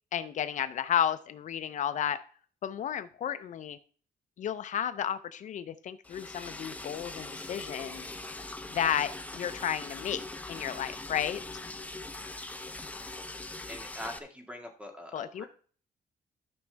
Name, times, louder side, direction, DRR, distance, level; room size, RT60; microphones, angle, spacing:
voice 1, 0.1-2.2 2.6-3.8 4.4-8.1 8.7-10.2 10.5-11.4 15.1-15.4, left 9 dB, 55° left, 12 dB, 0.5 m, -32 dB
Liquid, 6.0-14.2, left 2 dB, 10° left, 0.7 m, -41 dB
voice 2, 13.7-15.5, left 1 dB, 10° right, 3 dB, 1.7 m, -43 dB
13.0 x 6.2 x 3.3 m, 0.44 s
cardioid pair, 145°, 15 cm